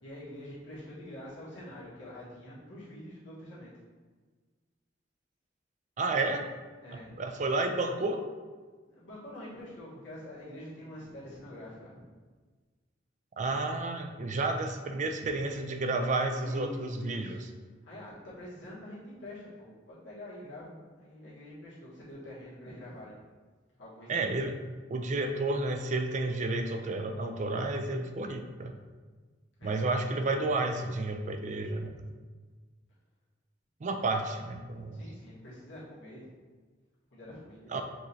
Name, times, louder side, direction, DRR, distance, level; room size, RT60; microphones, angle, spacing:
voice 1, 0.0-3.7 6.8-7.2 8.8-12.1 16.4-17.4 17.8-23.1 23.8-24.3 29.6-29.8 34.0-34.1 34.7-36.3 37.1-37.7, left 1 dB, 90° left, -9 dB, 1.4 m, -46 dB
voice 2, 6.0-6.5 7.2-8.2 13.4-17.4 24.1-24.6 24.9-28.8 29.6-32.0 33.8-35.0 37.7-37.8, right 2 dB, 40° right, 6 dB, 0.4 m, -31 dB
6.0 x 3.1 x 2.7 m, 1.4 s
head